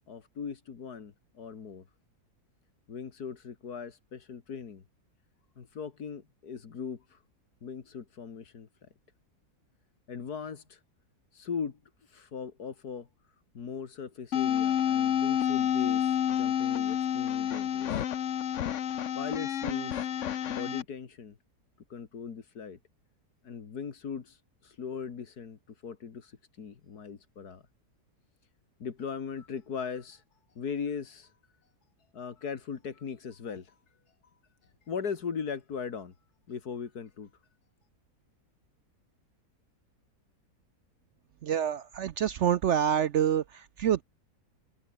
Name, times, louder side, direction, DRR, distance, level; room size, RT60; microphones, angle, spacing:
voice 1, 0.1-1.8 2.9-4.8 5.6-7.2 7.6-8.9 10.1-10.8 11.3-11.8 12.1-13.1 13.5-18.0 19.1-20.1 20.5-21.4 21.9-22.8 23.4-24.4 24.6-27.6 28.8-30.2 30.6-31.3 32.1-33.7 34.9-36.1 36.5-37.3, left 6 dB, 80° left, 2.4 m, -39 dB
sound 1, 14.3-20.8, left 9 dB, 55° left, 1.1 m, -29 dB
voice 2, 41.4-44.0, right 9 dB, 65° right, 0.7 m, -27 dB
omnidirectional pair, 1.7 m